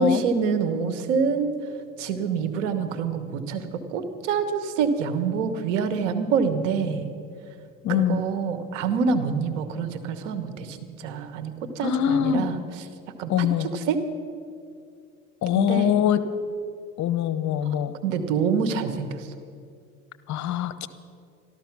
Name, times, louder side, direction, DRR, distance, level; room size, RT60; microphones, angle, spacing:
voice 1, 0.0-1.5 2.0-7.1 7.9-12.6 13.2-13.5 13.7-14.0 15.5-16.0 17.7-17.8 18.0-19.3, right 5 dB, 85° right, 8 dB, 1.3 m, -26 dB
voice 2, 7.8-8.2 11.8-12.5 13.3-13.7 15.4-16.2 17.0-17.9 20.3-20.9, left 10 dB, 50° left, 13 dB, 0.9 m, -23 dB
13.5 x 13.0 x 6.0 m, 2.4 s
supercardioid pair, 85°, 36 cm